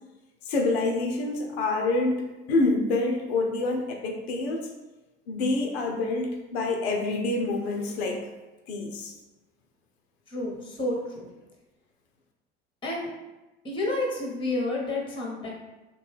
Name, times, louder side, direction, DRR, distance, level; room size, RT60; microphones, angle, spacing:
voice 1, 0.5-4.7 5.3-8.2 8.7-9.1, left 2 dB, 75° left, 2 dB, 0.5 m, -27 dB
voice 2, 10.3-11.0 12.8-13.1 13.6-15.5, left 2 dB, 15° left, -2 dB, 0.8 m, -29 dB
2.7 x 2.2 x 3.2 m, 1.1 s
hypercardioid pair, 70°, 32 cm